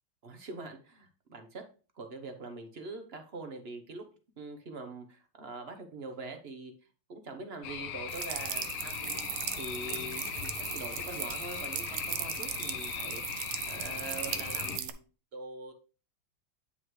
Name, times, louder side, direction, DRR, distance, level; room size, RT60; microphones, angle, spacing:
voice 1, 0.2-1.7 1.9-4.1 4.4-6.7 7.1-9.3 9.6-15.0 15.3-15.7, right 3 dB, 45° right, 6 dB, 0.8 m, -43 dB
sound 1, 7.6-14.8, left 9 dB, 85° left, 1.5 m, -39 dB
sound 2, 8.1-14.9, right 10 dB, 70° right, 1.2 m, -38 dB
9.2 x 5.7 x 3.2 m, 0.36 s
omnidirectional pair, 2.3 m